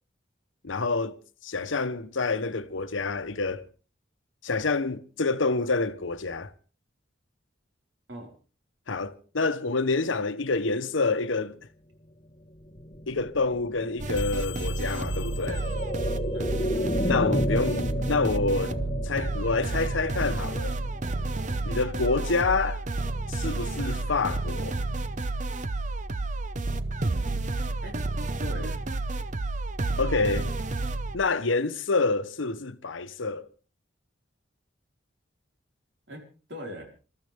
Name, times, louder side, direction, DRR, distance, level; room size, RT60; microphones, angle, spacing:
voice 1, 0.6-1.1 1.4-3.6 4.4-6.5 8.9-11.6 13.1-15.7 17.0-18.8 19.0-20.8 21.6-22.8 23.3-24.8 30.0-30.5 31.1-33.5, left 3 dB, 80° left, 1.0 m, -27 dB
sound 1, 12.4-22.2 22.6-22.7, equal, 25° left, 1.5 m, -33 dB
sound 2, 14.0-31.2, right 2 dB, 40° right, 0.7 m, -30 dB
sound 3, 14.2-16.7, left 13 dB, 60° left, 1.1 m, -44 dB
voice 2, 28.4-28.8 36.1-36.9, equal, 65° right, 4.8 m, -41 dB
27.5 x 13.5 x 3.5 m
head